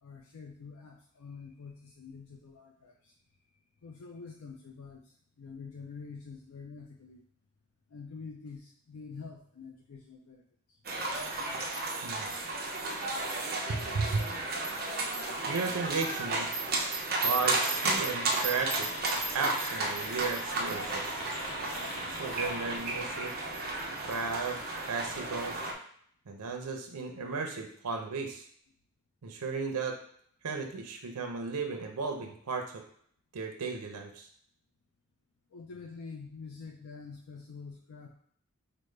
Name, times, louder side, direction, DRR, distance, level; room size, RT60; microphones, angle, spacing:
voice 1, 0.0-3.1 3.8-7.2 7.9-10.4 35.5-38.1, left 5 dB, 70° left, 1 dB, 0.4 m, -46 dB
sound 1, 10.8-25.7, right 2 dB, 45° right, 0.6 m, -33 dB
voice 2, 13.7-14.2 15.5-16.5 16.8-18.9 19.3-21.2 22.1-23.3 24.1-24.6 24.9-25.6 26.3-28.4 29.2-30.0 30.4-32.8 33.3-34.3, right 4 dB, 85° right, 3 dB, 0.6 m, -34 dB
sound 2, 17.2-22.8, left 1 dB, 50° left, 1.0 m, -43 dB
5.0 x 2.1 x 3.2 m, 0.63 s
head